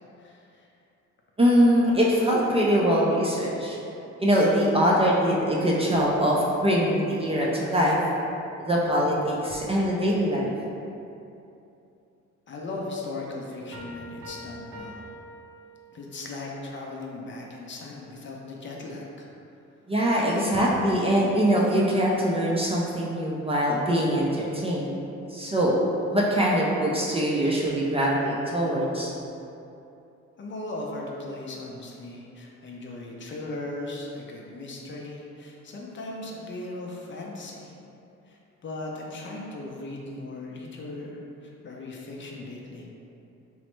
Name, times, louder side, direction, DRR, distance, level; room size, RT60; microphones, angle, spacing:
voice 1, 0.2-0.7 12.5-15.1 15.9-19.3 30.4-37.7 38.3-42.9, left 2 dB, 40° left, -2 dB, 0.5 m, -38 dB
voice 2, 1.4-3.8 4.2-8.0 8.6-10.5 19.9-24.9 25.3-25.8 26.1-29.1, equal, 20° right, -4 dB, 0.3 m, -23 dB
sound 1, 13.7-16.2, equal, 70° right, 0.7 m, -44 dB
3.1 x 2.0 x 3.1 m, 2.7 s
cardioid pair, 90°, 30 cm